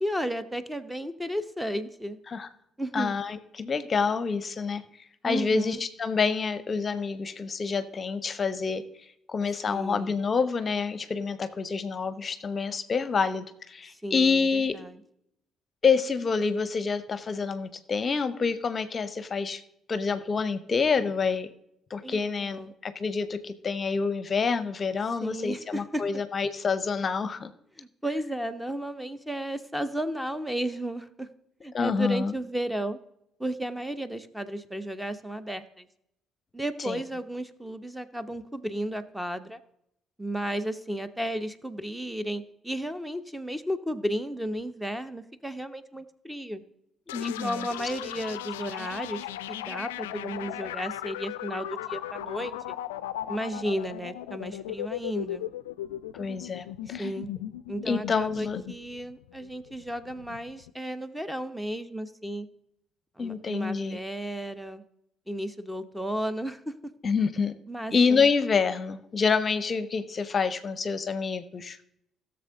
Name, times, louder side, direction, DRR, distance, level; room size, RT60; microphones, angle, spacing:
voice 1, 0.0-2.2 2.8-3.2 5.2-5.8 9.7-10.2 14.0-15.0 22.0-22.7 25.2-26.0 27.8-31.3 31.6-33.0 33.4-35.9 36.5-39.6 40.2-46.6 47.2-52.8 53.3-55.5 57.0-57.3 57.7-62.5 63.2-64.8 65.3-66.9 67.7-68.3, right 1 dB, 5° right, 12 dB, 0.9 m, -33 dB
voice 2, 2.9-4.8 5.2-8.8 9.3-14.7 15.8-19.6 19.9-21.5 21.9-27.5 31.7-32.3 36.8-37.0 47.1-47.7 56.1-57.1 57.8-58.6 63.2-64.0 67.0-67.5 67.9-71.8, left 5 dB, 40° left, 12 dB, 0.7 m, -27 dB
sound 1, 47.1-60.7, left 13 dB, 80° left, 0.3 m, -37 dB
16.5 x 6.9 x 3.9 m, 0.77 s
figure-of-eight pair, 45°, 0 cm